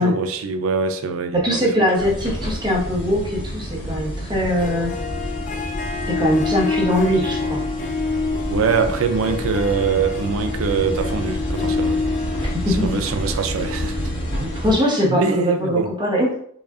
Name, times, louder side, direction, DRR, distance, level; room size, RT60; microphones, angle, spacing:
voice 1, 0.0-1.7 2.0-2.1 8.4-12.0 12.7-14.0 15.1-15.9, right 5 dB, 85° right, 0.4 m, -23 dB
voice 2, 1.3-4.9 6.1-7.6 12.4-12.9 14.4-16.3, equal, 20° right, 1.0 m, -21 dB
sound 1, 2.0-14.7, equal, 60° left, 1.2 m, -29 dB
Harp, 4.4-15.6, left 4 dB, 40° left, 0.4 m, -28 dB
4.9 x 2.4 x 2.4 m
head